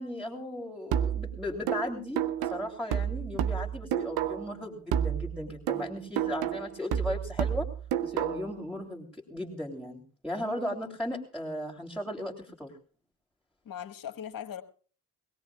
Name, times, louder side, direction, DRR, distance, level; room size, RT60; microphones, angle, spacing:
voice 1, 0.0-7.7 8.0-12.7, left 1 dB, ahead, -1 dB, 3.2 m, -36 dB
sound 1, 0.9-4.6 4.9-8.6, right 9 dB, 85° right, 0.8 m, -31 dB
voice 2, 5.7-6.0 6.4-6.5 8.4-8.6 10.4-10.5 13.6-14.6, left 9 dB, 65° left, 6 dB, 1.6 m, -41 dB
22.0 x 17.0 x 2.4 m, 0.40 s
supercardioid pair, 50°, 37 cm